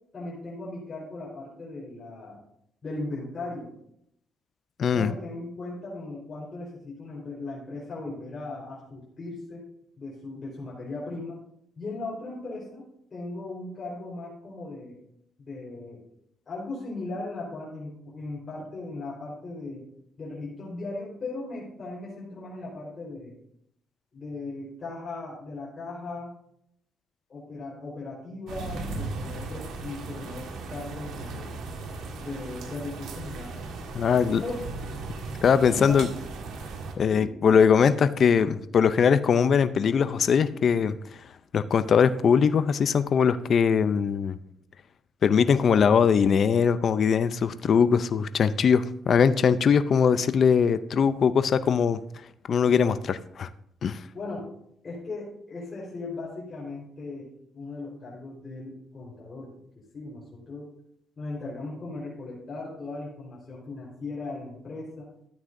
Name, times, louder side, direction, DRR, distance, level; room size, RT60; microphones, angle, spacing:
voice 1, 0.1-2.4 2.8-3.7 4.9-9.6 10.0-11.4 11.8-12.8 13.1-15.0 15.4-16.0 16.5-19.8 20.2-23.3 24.1-26.3 27.3-31.5 32.2-33.7 34.4-34.6 35.7-36.0 37.1-37.3 54.1-54.5 54.8-57.3 57.5-59.5 59.9-60.7 61.2-65.1, left 2 dB, 40° left, -6 dB, 4.1 m, -37 dB
voice 2, 4.8-5.1 33.9-34.4 35.4-36.1 37.0-41.0 41.5-44.4 45.2-52.0 52.5-53.5 53.8-54.0, left 6 dB, 55° left, 13 dB, 0.5 m, -21 dB
sound 1, 28.5-36.9, right 3 dB, 80° right, 1.6 m, -37 dB
13.0 x 9.1 x 2.6 m, 0.74 s
cardioid pair, 90°, 0 cm